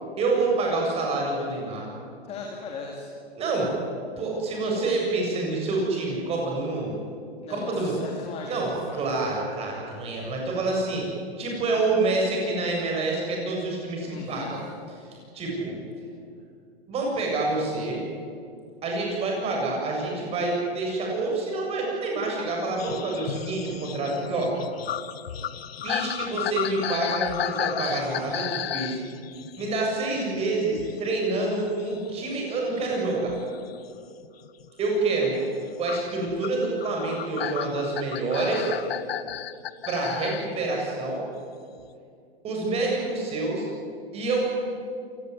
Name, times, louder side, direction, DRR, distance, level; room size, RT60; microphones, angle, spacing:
voice 1, 0.2-1.9 3.4-3.7 4.2-6.9 7.5-7.9 8.5-11.1 11.4-14.6 15.3-15.8 16.9-18.0 18.8-24.5 25.8-29.0 29.6-33.4 34.8-35.4 35.8-38.7 39.9-41.2 42.4-43.7 44.1-44.5, right 3 dB, 20° right, -1 dB, 7.4 m, -27 dB
voice 2, 2.2-3.1 7.4-9.0 14.1-14.5, left 4 dB, 20° left, 0 dB, 2.8 m, -38 dB
sound 1, 22.8-31.1 31.4-33.8 34.2-34.7 35.9-40.5 41.8-41.9, left 10 dB, 65° left, 1.3 m, -34 dB
28.0 x 18.5 x 9.7 m, 2.4 s
hypercardioid pair, 160°, 32 cm